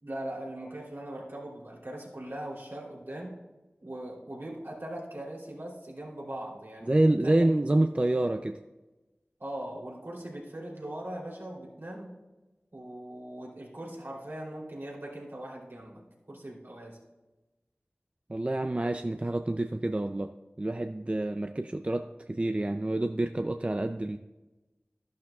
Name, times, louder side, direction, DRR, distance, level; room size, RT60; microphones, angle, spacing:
voice 1, 0.0-3.4 3.8-7.5 9.4-12.1 12.7-17.0, right 1 dB, 65° right, -3 dB, 3.2 m, -40 dB
voice 2, 6.9-8.6 18.3-24.2, right 1 dB, 30° right, 7 dB, 0.4 m, -27 dB
12.5 x 11.5 x 2.3 m, 1.1 s
wide cardioid pair, 55°, 4 cm